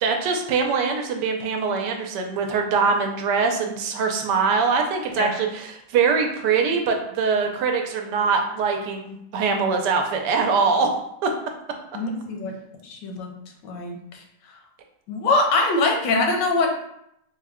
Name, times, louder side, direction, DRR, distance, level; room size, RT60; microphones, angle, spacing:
voice 1, 0.0-10.9 11.2-11.3, right 5 dB, 80° right, 3 dB, 1.2 m, -23 dB
voice 2, 11.9-12.5 12.8-13.3 13.6-14.2 15.1-16.7, left 3 dB, 85° left, 3 dB, 1.3 m, -23 dB
3.9 x 2.2 x 3.5 m, 0.77 s
omnidirectional pair, 1.8 m